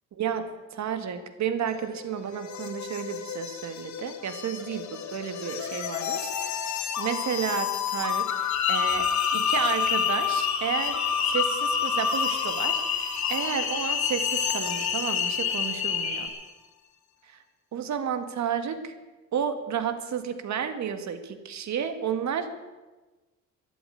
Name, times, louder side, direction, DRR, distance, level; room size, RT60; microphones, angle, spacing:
voice 1, 0.7-11.0 11.3-16.3 17.3-17.4 17.7-18.9 19.3-22.5, right 7 dB, 65° right, 9 dB, 1.9 m, -32 dB
sound 1, 1.7-16.3, left 7 dB, 70° left, 1.7 m, -31 dB
sound 2, 8.5-16.3, left 7 dB, 50° left, 4.2 m, -29 dB
13.0 x 11.5 x 9.0 m, 1.2 s
cardioid pair, 90°, 30 cm